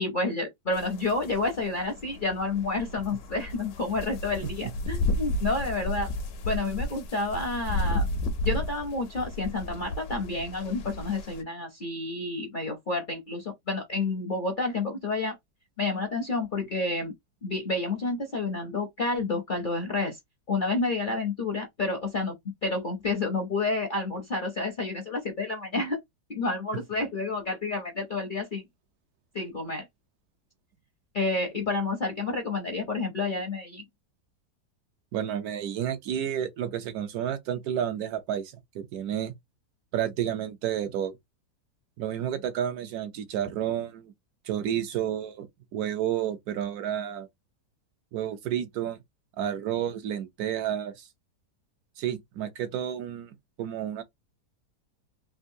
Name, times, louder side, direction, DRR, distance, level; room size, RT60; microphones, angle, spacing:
voice 1, 0.0-6.1 6.4-8.0 8.4-15.3 15.8-17.1 17.4-20.2 20.5-26.0 26.3-28.6 29.3-29.9 31.1-33.8, left 3 dB, 50° left, 0.6 m, -30 dB
sound 1, 0.7-11.4, left 1 dB, 70° left, 1.1 m, -33 dB
voice 2, 35.1-39.3 39.9-41.1 42.0-44.1 44.4-45.5 45.7-47.3 48.1-49.0 49.4-51.1 52.0-54.0, right 10 dB, 75° right, 1.0 m, -31 dB
3.6 x 2.4 x 2.7 m
omnidirectional pair, 1.8 m